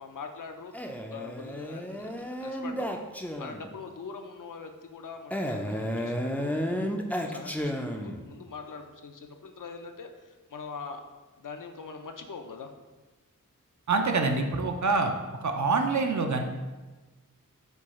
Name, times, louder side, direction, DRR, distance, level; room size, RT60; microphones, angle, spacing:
voice 1, 0.0-3.0 3.4-6.6 7.2-11.0 11.4-12.7, left 5 dB, 65° left, 5 dB, 0.5 m, -43 dB
Male speech man speaking, 0.7-3.7 5.3-8.3, equal, 5° left, 0.3 m, -32 dB
voice 2, 13.9-15.1 15.4-16.4, right 3 dB, 60° right, 5 dB, 0.5 m, -25 dB
4.5 x 2.3 x 4.1 m, 1.2 s
wide cardioid pair, 45°, 34 cm